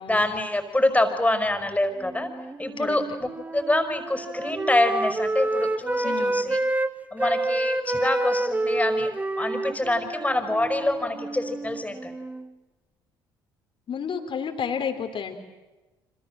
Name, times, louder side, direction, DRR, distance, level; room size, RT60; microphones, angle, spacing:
voice 1, 0.1-2.3 2.6-6.6 7.1-9.1 9.4-12.1, left 1 dB, 10° left, 6 dB, 5.1 m, -25 dB
Wind instrument woodwind instrument, 2.0-6.9 7.2-12.5, right 2 dB, 15° right, 1.2 m, -29 dB
voice 2, 6.0-6.4 13.9-15.3, left 7 dB, 45° left, 5 dB, 3.5 m, -31 dB
28.5 x 26.0 x 7.6 m, 1.1 s
hypercardioid pair, 55°, 12 cm